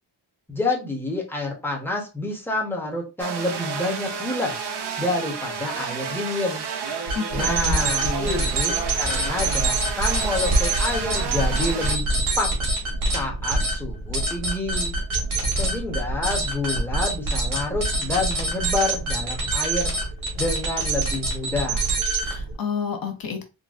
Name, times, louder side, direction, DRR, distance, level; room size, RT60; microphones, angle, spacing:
voice 1, 0.5-4.6 5.0-6.6 7.3-8.7 9.0-12.1 12.4-12.5 13.1-14.9 15.5-19.9 20.4-21.8, left 2 dB, 5° left, -1 dB, 0.8 m, -28 dB
sound 1, 3.2-12.0, right 6 dB, 60° right, 0.6 m, -31 dB
voice 2, 7.1-8.3 22.2-23.4, left 6 dB, 50° left, 4 dB, 0.8 m, -30 dB
sound 2, 7.1-22.5, right 2 dB, 85° right, 1.4 m, -25 dB
3.9 x 2.1 x 2.4 m, 0.29 s
wide cardioid pair, 125°, 47 cm